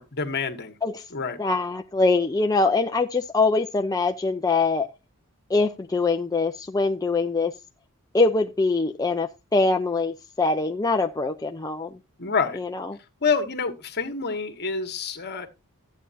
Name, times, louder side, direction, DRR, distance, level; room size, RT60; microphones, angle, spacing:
voice 1, 0.0-0.7 1.1-1.4 12.2-12.6 13.2-15.5, left 5 dB, 50° left, 1.6 m, -27 dB
voice 2, 1.4-4.9 5.5-7.5 8.1-11.9 12.6-12.9, left 3 dB, 15° left, 0.5 m, -23 dB
13.0 x 8.5 x 2.7 m
head